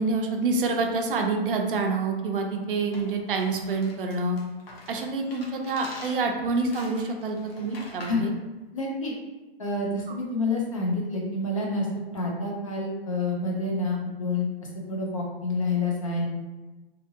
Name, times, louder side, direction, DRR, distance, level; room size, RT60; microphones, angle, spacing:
voice 1, 0.0-4.4 4.9-8.3, right 3 dB, 60° right, 3 dB, 0.5 m, -27 dB
sound 1, 2.9-8.3, left 1 dB, 70° left, 0.9 m, -46 dB
voice 2, 8.7-9.1 9.6-11.9 12.1-14.5 14.9-16.3, left 2 dB, 35° left, -2 dB, 0.4 m, -28 dB
2.7 x 2.6 x 2.6 m, 1.1 s
hypercardioid pair, 170°, 31 cm